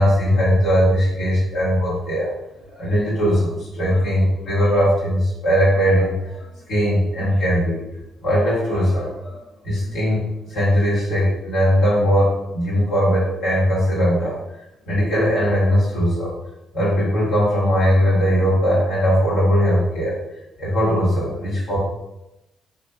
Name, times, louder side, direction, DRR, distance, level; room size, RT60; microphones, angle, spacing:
voice 1, 0.0-2.3 2.7-7.8 8.2-14.4 14.8-16.3 16.7-20.1 20.6-21.8, equal, 75° left, -7 dB, 1.5 m, -19 dB
3.1 x 2.7 x 2.2 m, 0.91 s
cardioid pair, 90°, 0 cm